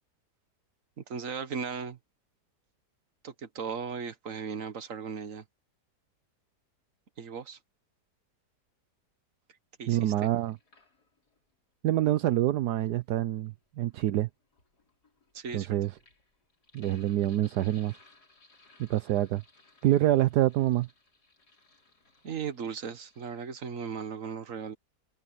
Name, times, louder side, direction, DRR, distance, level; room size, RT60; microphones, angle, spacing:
voice 1, 1.0-2.0 3.2-5.4 7.2-7.6 9.8-10.3 15.3-15.8 22.2-24.8, right 6 dB, 50° right, 1.8 m, -37 dB
Sink (filling or washing), 9.9-11.4 12.5-23.5, left 3 dB, 65° left, 5.4 m, -62 dB
voice 2, 9.9-10.6 11.8-14.3 15.5-15.9 16.7-18.0 18.8-19.4 19.8-20.9, right 13 dB, 75° right, 1.2 m, -26 dB
omnidirectional pair, 1.8 m